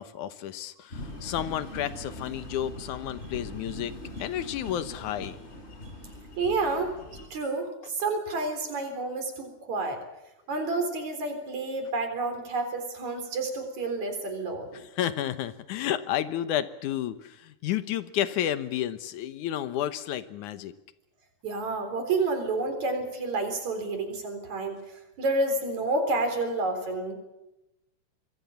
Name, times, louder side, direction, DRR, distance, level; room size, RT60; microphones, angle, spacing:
voice 1, 0.0-3.9 4.2-5.4 14.7-20.7, left 11 dB, 90° left, 12 dB, 2.5 m, -31 dB
sound 1, 0.9-7.3, left 1 dB, 20° left, 4.2 m, -41 dB
voice 2, 6.4-6.9 7.3-10.0 10.5-14.8 21.4-27.2, right 3 dB, 70° right, 6 dB, 5.2 m, -29 dB
26.0 x 22.0 x 7.2 m, 0.92 s
omnidirectional pair, 3.4 m